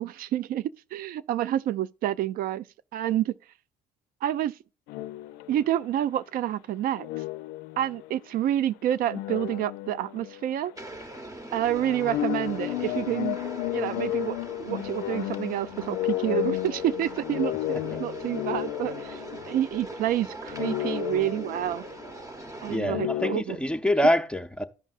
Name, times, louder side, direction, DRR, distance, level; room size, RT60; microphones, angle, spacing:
voice 1, 0.0-2.6 2.9-3.3 4.2-4.5 5.5-7.1 7.8-10.7 11.5-13.4 13.7-19.2 19.5-21.8 22.6-23.6, right 12 dB, 65° right, 0.4 m, -28 dB
sound 1, 4.9-5.9 7.0-8.2 8.9-10.7 11.0-11.2 11.6-20.1 20.4-22.1 22.8-23.4, left 15 dB, 85° left, 0.4 m, -33 dB
sound 2, 10.8-22.8, right 1 dB, 20° right, 1.0 m, -41 dB
voice 2, 22.7-24.7, left 1 dB, 5° left, 0.6 m, -25 dB
14.0 x 5.3 x 2.4 m
supercardioid pair, 80°, 16 cm